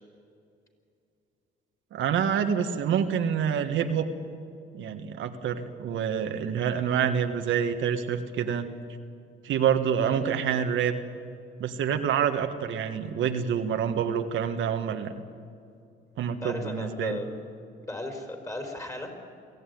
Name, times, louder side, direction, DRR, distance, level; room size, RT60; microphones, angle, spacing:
voice 1, 1.9-4.1 4.7-8.7 9.4-10.9 11.6-15.1 16.2-17.2, right 8 dB, 80° right, 6 dB, 1.5 m, -27 dB
voice 2, 16.4-17.3 17.8-19.1, left 1 dB, 15° left, 4 dB, 4.3 m, -36 dB
23.0 x 15.5 x 9.4 m, 2.5 s
cardioid pair, 90°, 20 cm